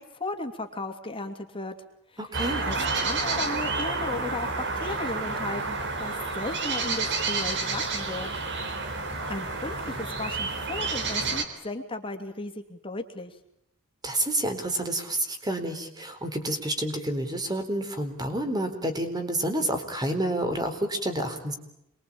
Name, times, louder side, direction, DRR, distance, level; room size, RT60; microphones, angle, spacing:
voice 1, 0.1-1.7 2.1-2.3 2.6-8.3 9.3-13.3, left 2 dB, 25° left, 5 dB, 2.9 m, -35 dB
voice 2, 2.2-2.6 14.0-21.6, right 1 dB, 20° right, 7 dB, 4.3 m, -29 dB
sound 1, 2.3-11.4, right 3 dB, 55° right, 4.1 m, -30 dB
27.5 x 22.5 x 8.8 m, 0.81 s
head